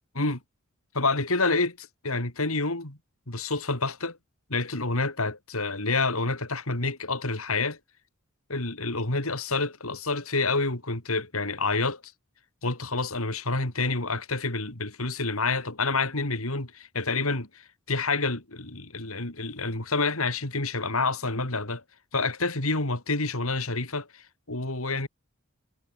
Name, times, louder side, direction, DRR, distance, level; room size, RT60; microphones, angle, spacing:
voice 1, 0.9-3.0 3.3-4.2 4.5-7.8 8.5-12.0 12.6-17.5 17.9-21.8 22.1-25.1, left 3 dB, 70° left, 3.9 m, -28 dB
head